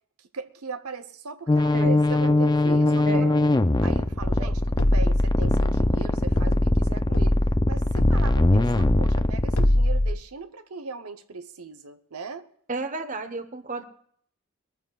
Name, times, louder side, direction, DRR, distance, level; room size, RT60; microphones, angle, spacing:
voice 1, 0.2-3.3 3.8-7.4 7.7-12.5, right 4 dB, 90° right, 0.9 m, -38 dB
sound 1, 1.5-9.7, left 2 dB, 20° left, 0.4 m, -22 dB
sound 2, 4.2-10.1, left 1 dB, 80° left, 1.1 m, -23 dB
voice 2, 12.7-13.9, right 3 dB, 35° right, 1.0 m, -32 dB
22.5 x 14.0 x 2.4 m
head